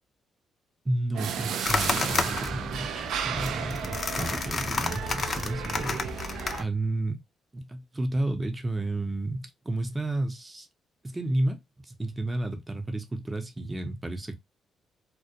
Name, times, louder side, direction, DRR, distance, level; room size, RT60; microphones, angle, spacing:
voice 1, 0.8-7.2 7.5-10.7 11.0-14.3, right 2 dB, 20° right, 0.6 m, -32 dB
sound 1, 1.1-6.6, right 8 dB, 80° right, 0.3 m, -34 dB
sound 2, 1.6-6.6, left 4 dB, 40° left, 0.4 m, -31 dB
2.2 x 2.1 x 2.7 m
cardioid pair, 90°, 0 cm